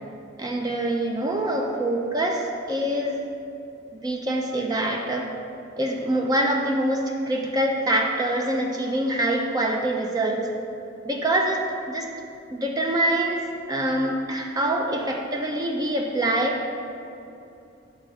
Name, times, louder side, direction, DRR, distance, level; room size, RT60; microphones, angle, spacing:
voice 1, 0.4-3.2 3.9-5.3 5.8-10.5 11.1-12.1 12.5-16.6, right 1 dB, 20° right, 1 dB, 0.4 m, -25 dB
6.3 x 3.7 x 5.7 m, 2.7 s
head